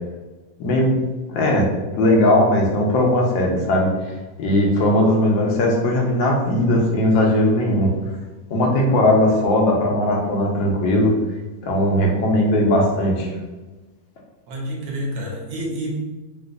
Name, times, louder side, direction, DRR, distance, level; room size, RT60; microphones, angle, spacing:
voice 1, 0.6-1.0 1.3-1.7 2.0-4.1 4.4-7.9 8.5-11.1 11.6-13.3, left 1 dB, 90° left, -1 dB, 1.5 m, -18 dB
voice 2, 14.5-16.2, right 1 dB, 75° right, -2 dB, 1.4 m, -28 dB
3.9 x 2.5 x 2.4 m, 1.2 s
omnidirectional pair, 2.0 m